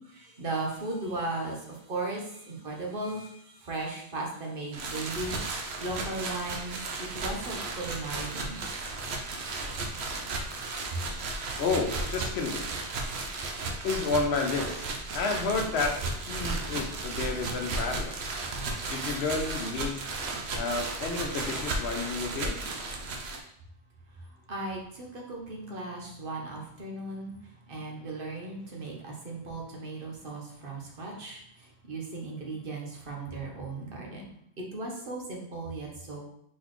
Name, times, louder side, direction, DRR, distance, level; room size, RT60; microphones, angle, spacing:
voice 1, 0.0-5.4 5.8-8.7 24.2-34.3 34.6-36.2, right 2 dB, 55° right, -1 dB, 1.2 m, -37 dB
sound 1, 4.7-23.4, right 3 dB, 75° right, 1.0 m, -34 dB
voice 2, 11.6-12.6 13.8-14.9 15.1-15.9 16.3-18.2 18.9-20.0 20.5-22.6, left 4 dB, 75° left, 4 dB, 0.9 m, -30 dB
4.4 x 3.9 x 3.1 m, 0.73 s
omnidirectional pair, 1.1 m